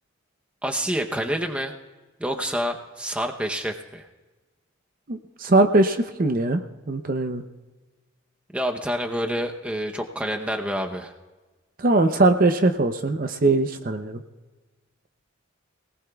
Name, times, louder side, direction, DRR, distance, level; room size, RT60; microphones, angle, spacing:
voice 1, 0.6-1.7 2.2-4.0 8.5-11.1, equal, 5° right, 3 dB, 0.7 m, -28 dB
voice 2, 5.1-6.6 6.9-7.4 11.8-14.2, right 2 dB, 40° right, 7 dB, 0.6 m, -21 dB
24.5 x 18.5 x 2.3 m, 1.2 s
head